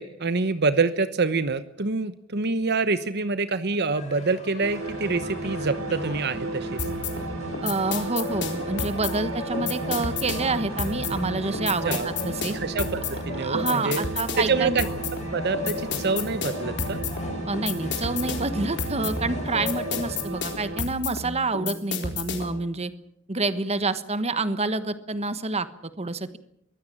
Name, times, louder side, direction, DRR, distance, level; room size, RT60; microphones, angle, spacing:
voice 1, 0.0-6.8 11.8-12.1 12.5-14.0 14.4-14.9 15.3-17.0, right 4 dB, 55° right, 12 dB, 1.0 m, -26 dB
sound 1, 3.9-20.1, left 1 dB, 35° left, 4.9 m, -37 dB
sound 2, 4.6-20.8, right 2 dB, 90° right, 3.0 m, -35 dB
sound 3, 6.8-22.6, left 4 dB, 60° left, 4.1 m, -32 dB
voice 2, 7.6-12.5 13.4-14.8 17.5-22.9 23.3-26.4, right 3 dB, 30° right, 13 dB, 1.3 m, -28 dB
23.0 x 16.0 x 8.7 m, 0.72 s
head